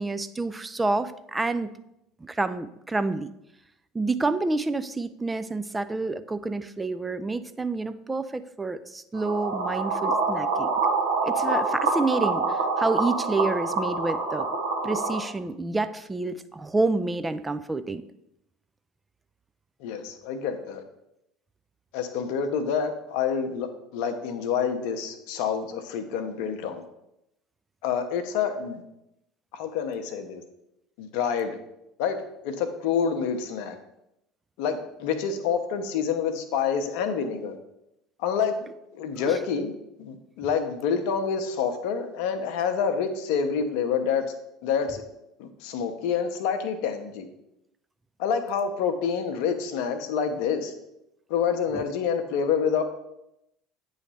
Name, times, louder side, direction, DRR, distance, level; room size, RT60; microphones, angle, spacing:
voice 1, 0.0-1.7 2.2-3.3 3.9-10.7 11.2-14.5 14.8-18.0 39.3-39.4 51.7-51.8, right 3 dB, 15° right, 12 dB, 0.3 m, -28 dB
sound 1, 9.1-15.2, right 3 dB, 80° right, 1.0 m, -26 dB
voice 2, 19.8-20.8 21.9-26.9 27.8-28.8 29.5-30.4 31.0-31.6 32.0-33.8 34.6-37.6 38.2-38.6 38.9-39.7 40.0-44.2 44.6-45.0 45.4-47.3 48.2-50.7 51.3-52.8, left 6 dB, 65° left, 8 dB, 0.7 m, -27 dB
8.7 x 3.2 x 4.1 m, 0.84 s
figure-of-eight pair, 65°, 0 cm